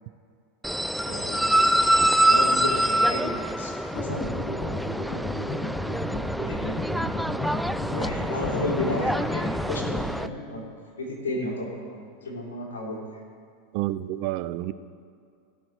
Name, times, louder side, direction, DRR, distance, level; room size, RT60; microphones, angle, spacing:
sound 1, 0.6-10.3, right 1 dB, ahead, 0.3 m, -25 dB
voice 1, 1.0-1.7 2.3-4.3 6.4-6.8 7.9-10.7 11.0-13.0, left 1 dB, 90° left, -3 dB, 3.3 m, -33 dB
sound 2, 3.9-10.1, left 1 dB, 20° left, 1.7 m, -32 dB
voice 2, 13.7-14.7, right 15 dB, 60° right, 14 dB, 0.5 m, -29 dB
17.0 x 6.6 x 4.6 m, 2.3 s
hypercardioid pair, 100°, 0 cm